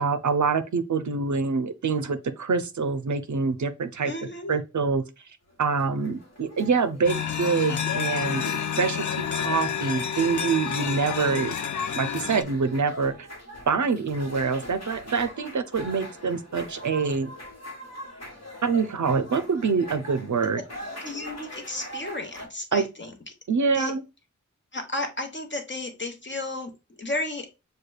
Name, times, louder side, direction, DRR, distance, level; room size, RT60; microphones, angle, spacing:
voice 1, 0.0-4.1 4.5-5.0 5.6-8.4 8.8-11.5 12.0-13.3 13.7-17.3 18.6-20.6 22.7-22.9 23.5-24.0, right 5 dB, 70° right, 0.5 m, -25 dB
voice 2, 4.1-4.6 20.5-23.1 23.7-23.9 24.7-26.7 27.0-27.5, left 2 dB, 40° left, 0.9 m, -33 dB
sound 1, 5.5-22.5, equal, 55° left, 1.3 m, -43 dB
sound 2, 7.0-12.4, left 8 dB, 75° left, 0.5 m, -29 dB
6.4 x 2.2 x 2.3 m
wide cardioid pair, 50°, 30 cm